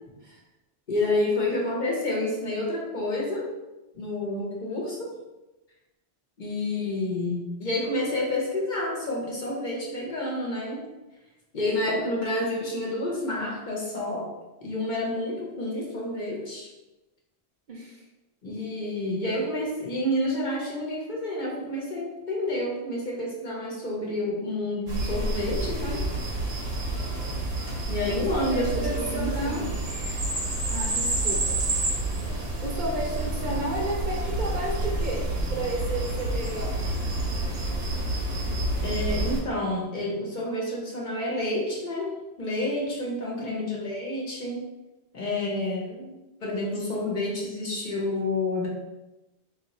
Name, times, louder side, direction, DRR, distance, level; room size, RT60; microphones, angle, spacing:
voice 1, 0.9-3.5 3.9-5.1 6.4-10.9 11.5-14.3 14.6-16.7 18.4-26.0 27.9-29.7 38.8-44.6 45.1-45.9 46.4-48.7, left 1 dB, 50° left, -2 dB, 0.8 m, -29 dB
voice 2, 11.7-12.1 17.7-18.0 28.1-29.7 30.7-31.6 32.6-36.9 43.4-43.9 45.5-46.1, right 2 dB, 55° right, -2 dB, 0.7 m, -33 dB
sound 1, 24.9-39.4, right 1 dB, 75° right, 1.0 m, -29 dB
2.7 x 2.4 x 4.0 m, 1.0 s
omnidirectional pair, 1.1 m